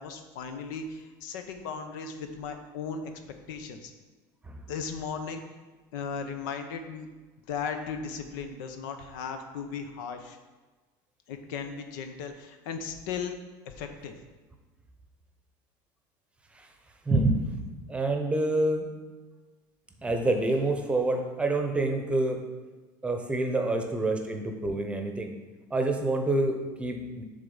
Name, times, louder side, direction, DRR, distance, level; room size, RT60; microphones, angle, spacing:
voice 1, 0.0-3.1 3.5-3.9 4.7-5.4 5.9-7.1 7.5-10.4 11.3-13.3 13.7-14.1, left 6 dB, 80° left, 6 dB, 0.8 m, -36 dB
voice 2, 17.1-17.6 17.9-18.9 20.0-22.4 23.0-25.3 25.7-27.2, right 2 dB, 10° right, 4 dB, 0.8 m, -27 dB
7.4 x 3.6 x 5.4 m, 1.3 s
supercardioid pair, 120°, 10 cm